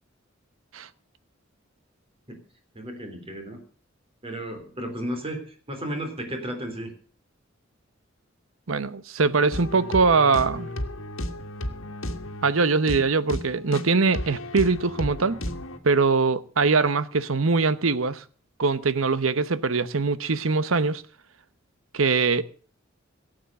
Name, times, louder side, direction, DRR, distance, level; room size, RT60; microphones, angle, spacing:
voice 1, 2.8-3.6 4.2-6.9, right 1 dB, 30° right, 3.4 m, -34 dB
voice 2, 8.7-10.7 12.4-15.4 15.8-18.2 18.6-21.0 21.9-22.4, right 4 dB, 90° right, 0.9 m, -22 dB
sound 1, 9.5-15.8, left 1 dB, 85° left, 1.7 m, -34 dB
17.0 x 8.1 x 6.7 m
head